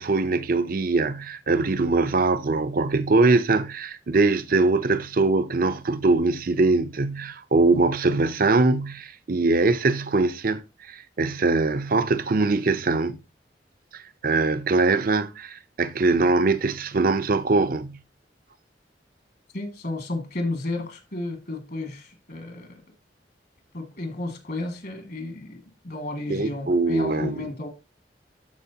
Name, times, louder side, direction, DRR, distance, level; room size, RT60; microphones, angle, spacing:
voice 1, 0.0-13.2 13.9-18.0 26.3-27.4, right 3 dB, 55° right, 0.6 m, -22 dB
voice 2, 19.5-22.8 23.7-27.7, left 2 dB, 60° left, 2.1 m, -32 dB
13.0 x 4.4 x 2.8 m
head